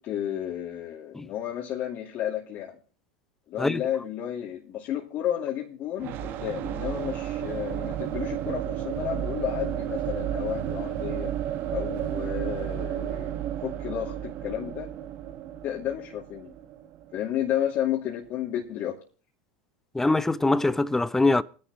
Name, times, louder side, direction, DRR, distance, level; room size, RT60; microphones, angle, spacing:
voice 1, 0.0-2.8 3.5-11.3 11.7-14.9 15.6-16.5 17.1-19.0, left 11 dB, 50° left, 2.5 m, -32 dB
sound 1, 6.0-17.8, right 11 dB, 50° right, 1.2 m, -32 dB
voice 2, 19.9-21.4, left 2 dB, 10° left, 0.8 m, -23 dB
21.0 x 11.0 x 3.1 m
hypercardioid pair, 100°, 4 cm